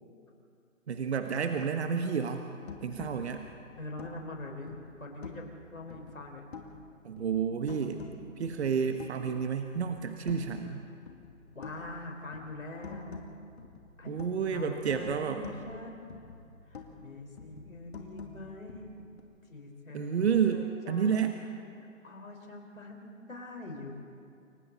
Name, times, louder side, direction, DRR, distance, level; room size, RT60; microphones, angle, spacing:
voice 1, 0.9-2.4 2.8-3.4 7.0-8.0 8.4-10.8 14.1-15.4 19.9-21.4, right 6 dB, 55° right, 6 dB, 1.4 m, -30 dB
sound 1, 2.7-5.6 5.9-6.9 7.2-9.4 9.7-10.7 11.1-14.6 14.9-17.1 17.4-19.2, left 4 dB, 50° left, 2.6 m, -47 dB
voice 2, 3.8-6.4 11.5-13.2 14.0-14.2 14.5-16.1 16.7-19.1 19.4-23.9, left 2 dB, 85° left, 2 dB, 4.8 m, -44 dB
29.0 x 24.0 x 4.1 m, 2.5 s
figure-of-eight pair, 140°, 40 cm